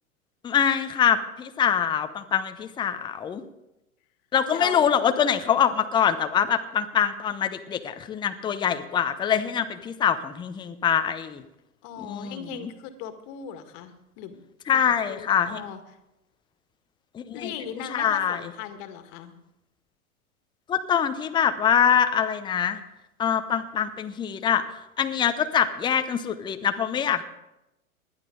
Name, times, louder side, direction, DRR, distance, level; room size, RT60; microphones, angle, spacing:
voice 1, 0.4-3.4 4.3-11.4 12.0-12.4 14.7-15.6 17.1-17.5 17.9-18.4 20.7-22.8 23.2-24.6 25.0-27.2, left 8 dB, 10° left, 9 dB, 0.6 m, -24 dB
voice 2, 4.5-4.9 11.8-14.4 14.7-15.8 17.3-19.3, left 8 dB, 40° left, 8 dB, 1.8 m, -38 dB
20.0 x 11.5 x 3.9 m, 0.92 s
hypercardioid pair, 105°, 43 cm